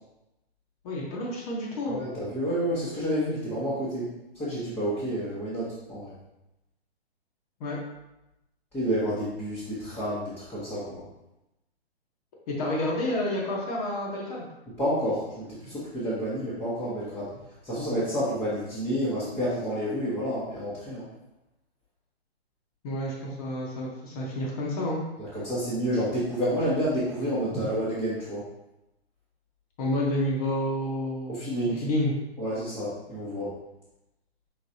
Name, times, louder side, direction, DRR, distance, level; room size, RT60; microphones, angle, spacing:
voice 1, 0.8-2.0 7.6-7.8 12.5-14.5 22.8-25.0 29.8-31.4 31.8-32.1, left 1 dB, 35° left, -3 dB, 1.1 m, -29 dB
voice 2, 1.9-6.1 8.7-11.0 14.8-17.3 17.6-21.1 25.2-28.5 31.3-31.8 32.4-33.5, equal, 5° left, -12 dB, 1.0 m, -29 dB
5.0 x 3.8 x 2.7 m, 0.92 s
figure-of-eight pair, 135°, 32 cm